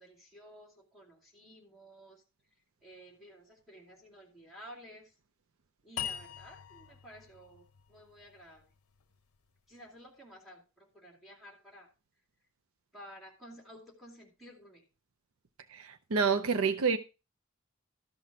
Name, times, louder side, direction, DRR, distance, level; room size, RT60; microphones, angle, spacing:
voice 1, 0.0-2.2 2.8-5.1 5.8-8.7 9.7-11.9 12.9-14.9, equal, ahead, 2.5 m, -53 dB
sound 1, 6.0-9.2, left 9 dB, 80° left, 0.6 m, -43 dB
voice 2, 15.7-17.0, right 5 dB, 70° right, 0.6 m, -28 dB
13.0 x 5.9 x 4.7 m
head